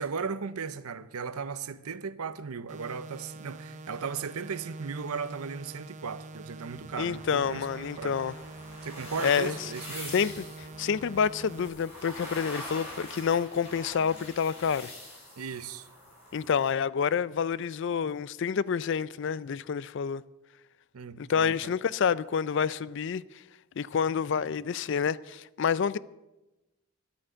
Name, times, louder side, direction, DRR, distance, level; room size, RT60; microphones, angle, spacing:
voice 1, 0.0-8.2 8.8-10.1 15.4-15.9 20.9-21.7, right 5 dB, 85° right, 0.7 m, -36 dB
sound 1, 2.7-11.7, right 3 dB, 35° right, 0.7 m, -45 dB
sound 2, 6.7-14.8, left 1 dB, 10° left, 2.0 m, -57 dB
voice 2, 7.0-8.3 9.2-9.6 10.1-10.3 10.6-14.9 16.3-20.2 21.2-23.2 23.8-26.0, left 6 dB, 55° left, 0.4 m, -28 dB
sound 3, 7.1-16.7, left 1 dB, 25° left, 6.1 m, -44 dB
11.5 x 8.6 x 7.8 m
head